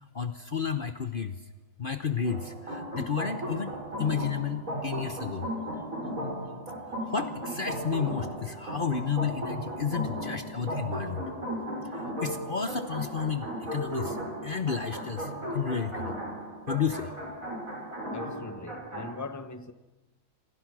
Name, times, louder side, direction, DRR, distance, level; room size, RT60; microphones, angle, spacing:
voice 1, 0.1-1.4 1.8-3.7 4.0-5.5 7.1-11.2 11.9-14.2 14.4-16.1 16.7-17.1, left 6 dB, 45° left, 1.1 m, -31 dB
sound 1, 2.2-19.1, right 1 dB, 90° right, 7.8 m, -36 dB
voice 2, 18.1-19.7, left 3 dB, 15° left, 1.1 m, -40 dB
27.5 x 26.5 x 6.2 m
omnidirectional pair, 1.4 m